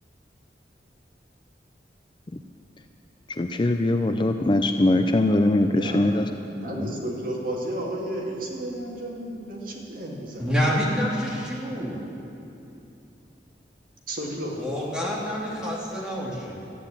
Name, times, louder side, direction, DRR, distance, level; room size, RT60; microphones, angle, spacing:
voice 1, 3.3-6.3 6.8-6.9, left 1 dB, 25° left, 6 dB, 0.4 m, -22 dB
voice 2, 5.6-6.1 6.4-10.5 14.1-14.5, right 1 dB, 50° right, -2 dB, 2.3 m, -32 dB
voice 3, 10.4-12.0 14.6-16.7, equal, 5° right, -6 dB, 2.8 m, -27 dB
13.5 x 9.3 x 8.8 m, 2.8 s
head